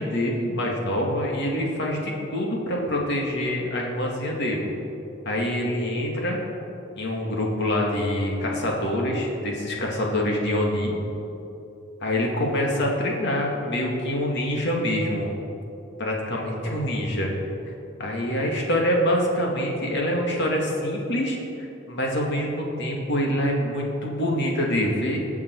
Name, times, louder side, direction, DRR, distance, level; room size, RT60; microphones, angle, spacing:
voice 1, 0.0-4.7 5.2-6.4 7.0-10.9 12.0-15.3 16.0-17.3 18.0-21.4 21.9-25.2, left 1 dB, 60° left, -1 dB, 2.3 m, -25 dB
20.0 x 7.3 x 4.7 m, 2.9 s
head